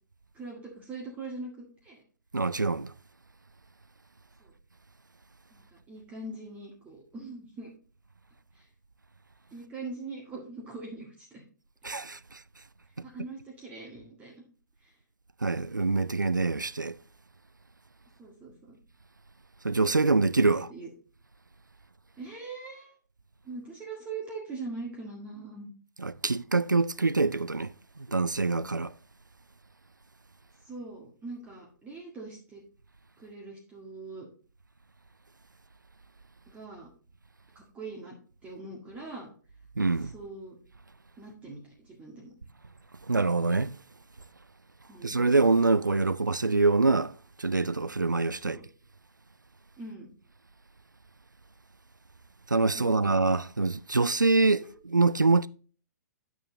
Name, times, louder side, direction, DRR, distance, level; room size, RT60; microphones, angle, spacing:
voice 1, 0.3-2.0 4.4-4.5 5.5-7.7 8.5-8.7 9.5-11.4 13.0-14.3 14.8-14.9 18.2-18.8 20.7-20.9 22.2-22.9 23.5-25.7 30.6-32.6 33.2-34.3 36.5-36.9 37.6-38.2 38.4-39.3 40.1-40.6 41.2-42.3 44.9-45.2 48.4-48.6 49.8-50.1 52.7-53.1, right 3 dB, 15° right, 1.8 m, -42 dB
voice 2, 2.3-2.9 11.8-12.4 15.4-17.0 19.6-20.7 26.0-28.9 39.8-40.1 43.1-43.7 45.0-48.6 52.5-55.5, right 3 dB, 85° right, 0.4 m, -25 dB
10.5 x 6.2 x 2.7 m
figure-of-eight pair, 120°, 10 cm